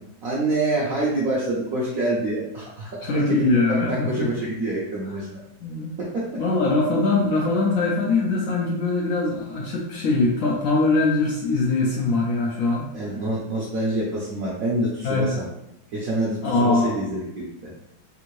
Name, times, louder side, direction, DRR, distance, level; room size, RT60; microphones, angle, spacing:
voice 1, 0.2-5.4 6.0-6.3 12.9-15.4 15.9-17.5, right 1 dB, 65° right, -6 dB, 0.9 m, -26 dB
voice 2, 3.0-4.3 5.6-5.9 6.4-12.8 15.0-15.4 16.4-16.9, left 3 dB, 80° left, -4 dB, 0.7 m, -22 dB
3.6 x 2.5 x 3.0 m, 0.86 s
omnidirectional pair, 2.1 m